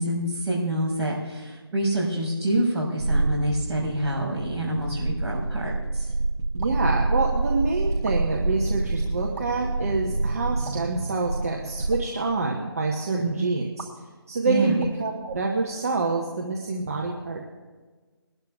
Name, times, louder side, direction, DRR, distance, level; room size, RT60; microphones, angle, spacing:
voice 1, 0.0-6.1 13.1-13.5 14.4-14.8, right 1 dB, 10° right, -10 dB, 4.2 m, -27 dB
sound 1, 3.0-12.4, right 2 dB, 70° right, 1.1 m, -27 dB
voice 2, 6.5-13.9 14.3-17.4, right 3 dB, 35° right, -1 dB, 1.1 m, -27 dB
sound 2, 6.5-6.9 7.9-8.2 9.2-9.5 10.6-11.0 11.8-12.1 13.8-13.9 14.7-15.9, right 3 dB, 55° right, 2.1 m, -40 dB
22.0 x 12.5 x 2.4 m, 1.4 s
figure-of-eight pair, 165°, 14 cm